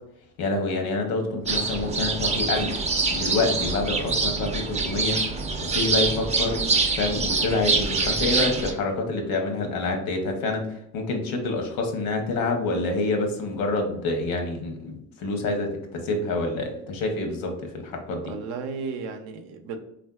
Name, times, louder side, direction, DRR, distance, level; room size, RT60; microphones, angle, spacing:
voice 1, 0.4-5.2 5.7-18.3, left 2 dB, 80° left, 4 dB, 0.8 m, -27 dB
sound 1, 1.5-8.7, right 3 dB, 20° right, 0.4 m, -25 dB
voice 2, 18.2-19.8, right 5 dB, 80° right, 6 dB, 0.6 m, -34 dB
3.4 x 2.5 x 2.3 m, 0.76 s
supercardioid pair, 90°, 34 cm